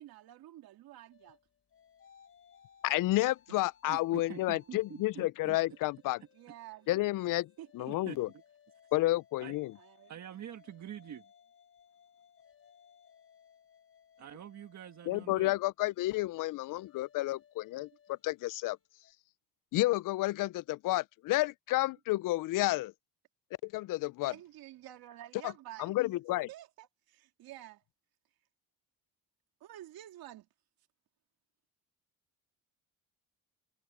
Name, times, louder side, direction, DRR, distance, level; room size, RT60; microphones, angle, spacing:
voice 1, 0.0-1.4 6.3-7.1 7.6-8.2 9.8-10.2 24.2-26.0 26.5-27.8 29.6-30.5, right 13 dB, 75° right, 2.7 m, -50 dB
sound 1, 1.1-5.2 5.6-19.1, left 8 dB, 35° left, 4.0 m, -64 dB
voice 2, 2.8-6.2 6.9-8.3 8.9-9.7 15.1-18.8 19.7-22.9 23.6-24.3 25.8-26.5, left 18 dB, 60° left, 0.5 m, -31 dB
voice 3, 3.8-5.8 7.9-8.2 9.4-9.6 10.1-11.3 14.2-15.5 17.7-17.8, right 10 dB, 50° right, 1.5 m, -46 dB
cardioid pair, 120°, 36 cm